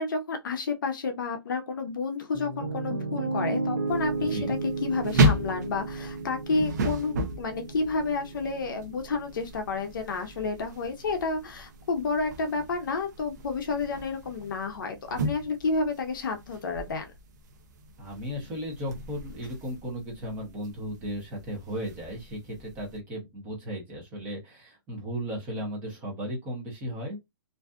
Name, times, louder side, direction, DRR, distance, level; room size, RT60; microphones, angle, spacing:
voice 1, 0.0-17.1, left 4 dB, 55° left, 0.6 m, -30 dB
Piano, 2.3-10.4, right 3 dB, 65° right, 0.9 m, -34 dB
sound 1, 3.9-23.0, right 1 dB, 45° right, 0.5 m, -34 dB
voice 2, 4.2-4.6 18.0-27.3, equal, 15° right, 0.8 m, -36 dB
2.6 x 2.3 x 2.3 m
hypercardioid pair, 175°, 13 cm